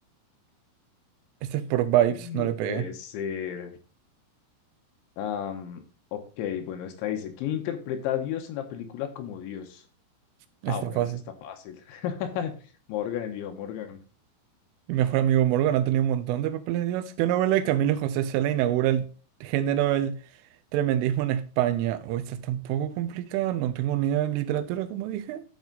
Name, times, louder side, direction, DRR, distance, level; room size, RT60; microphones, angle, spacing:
voice 1, 1.4-2.9 10.6-11.2 14.9-19.1 19.4-20.2 20.7-25.4, right 11 dB, 85° right, 3.2 m, -25 dB
voice 2, 2.2-3.7 5.2-5.8 6.1-9.8 10.7-11.1 11.4-12.5 12.9-14.0, left 9 dB, 75° left, 3.2 m, -33 dB
12.0 x 4.8 x 3.9 m
omnidirectional pair, 5.8 m